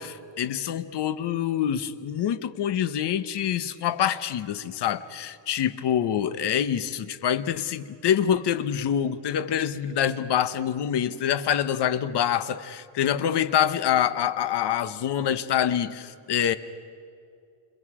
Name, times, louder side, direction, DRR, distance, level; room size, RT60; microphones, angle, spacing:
voice 1, 0.0-16.5, left 9 dB, 55° left, 12 dB, 1.1 m, -26 dB
29.0 x 28.0 x 4.9 m, 2.4 s
cardioid pair, 160°, 49 cm